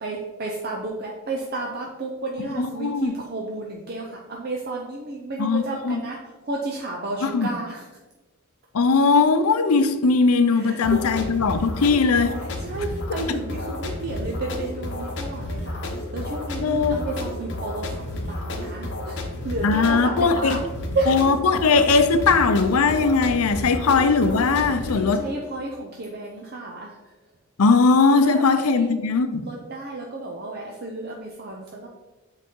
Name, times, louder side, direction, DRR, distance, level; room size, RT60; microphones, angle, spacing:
voice 1, 0.0-6.2 6.4-7.9 10.5-11.0 12.6-15.9 16.1-20.6 20.9-21.1 23.7-23.8 24.7-27.0 28.2-28.9 29.4-31.9, right 2 dB, 45° right, 0.6 m, -32 dB
voice 2, 2.6-3.1 5.4-6.0 7.2-7.5 8.7-12.3 16.6-17.1 19.6-20.6 21.1-25.2 27.6-29.4, left 4 dB, 80° left, 0.6 m, -19 dB
sound 1, 10.8-24.9, left 1 dB, 50° left, 0.9 m, -31 dB
7.6 x 4.0 x 3.7 m
head